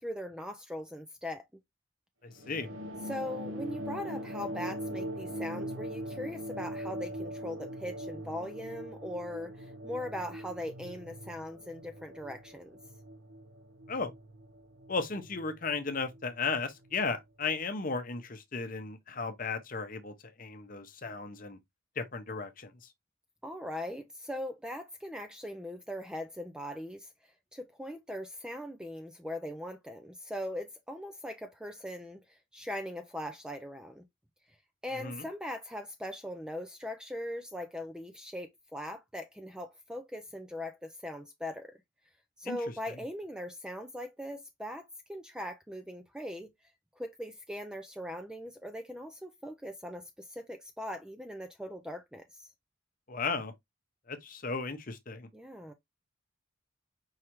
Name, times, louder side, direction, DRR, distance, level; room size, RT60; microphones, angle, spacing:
voice 1, 0.0-1.4 3.0-12.8 23.4-27.1 27.5-34.0 34.8-41.8 42.4-46.5 47.0-52.5 55.3-55.7, left 1 dB, 5° right, 0.3 m, -40 dB
voice 2, 2.2-2.7 13.9-14.1 14.9-20.1 20.4-21.6 22.0-22.7 35.0-35.2 42.4-42.6 53.1-53.5 54.1-55.3, left 4 dB, 40° left, 0.7 m, -35 dB
sound 1, 2.3-17.2, equal, 75° right, 0.9 m, -41 dB
4.8 x 3.2 x 2.9 m
head